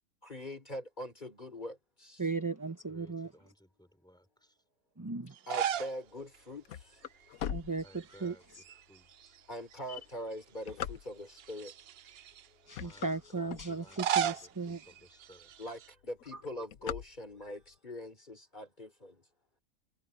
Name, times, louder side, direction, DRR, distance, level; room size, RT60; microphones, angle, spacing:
voice 1, 0.2-2.3 5.5-7.0 9.5-11.7 15.6-19.2, left 1 dB, 35° left, 3.9 m, -43 dB
voice 2, 2.2-3.3 5.0-5.3 7.5-7.8 8.2-8.3 12.7-14.8, right 4 dB, 15° right, 0.8 m, -36 dB
voice 3, 2.9-4.6 7.8-9.4 12.8-15.5, equal, 5° left, 5.0 m, -60 dB
sound 1, 5.3-6.0 6.3-6.4 7.8-8.3 8.6-9.7 10.3-10.4 11.3-12.5 13.7-15.9, right 9 dB, 60° right, 0.7 m, -36 dB
sound 2, 6.3-8.5 9.0-9.1 9.8-11.5 12.1-12.4 12.7-14.2 14.7-14.8 15.0-15.1 15.4-15.8 16.0-17.7, left 10 dB, 90° left, 1.2 m, -41 dB
omnidirectional pair, 1.4 m